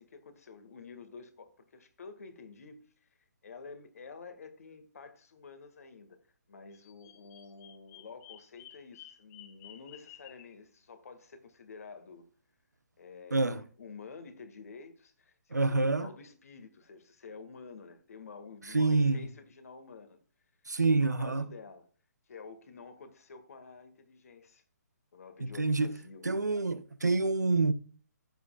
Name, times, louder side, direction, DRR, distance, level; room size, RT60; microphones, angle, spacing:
voice 1, 0.0-3.1 3.4-6.2 6.5-12.3 13.0-20.2 20.6-20.7 21.0-21.9 22.3-24.6 25.1-26.3, left 4 dB, 60° left, 1.8 m, -50 dB
Bird vocalization bird call bird song, 6.7-10.5, left 12 dB, 20° left, 1.0 m, -53 dB
voice 2, 13.3-13.6 15.5-16.1 18.7-19.2 20.7-21.4 25.4-26.0 26.2-27.7, right 3 dB, 85° right, 0.9 m, -27 dB
14.5 x 7.2 x 2.4 m
figure-of-eight pair, 135°, 9 cm